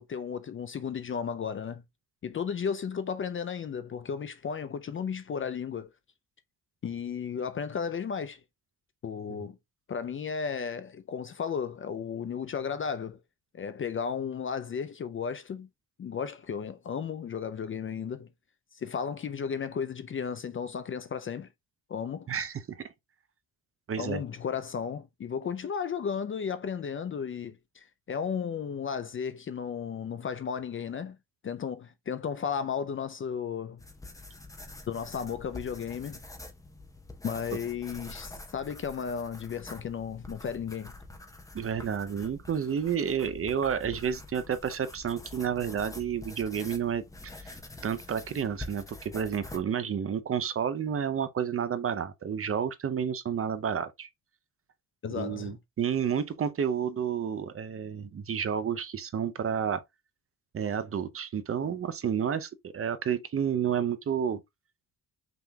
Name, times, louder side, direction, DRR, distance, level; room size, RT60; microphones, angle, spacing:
voice 1, 0.0-1.8 2.2-5.9 6.8-8.4 9.0-9.6 9.9-13.2 13.5-15.7 16.0-18.3 18.7-21.5 21.9-22.3 24.0-31.2 31.4-33.8 34.9-36.2 37.2-40.9 55.0-55.6, left 7 dB, 35° left, 0.4 m, -34 dB
voice 2, 22.3-22.8 23.9-24.2 41.5-47.0 47.4-47.6 47.8-54.1 55.1-59.8 60.5-64.4, right 7 dB, 40° right, 0.6 m, -30 dB
sound 1, 33.8-49.6, left 2 dB, 10° left, 0.7 m, -46 dB
5.9 x 3.6 x 2.2 m
wide cardioid pair, 145°, 37 cm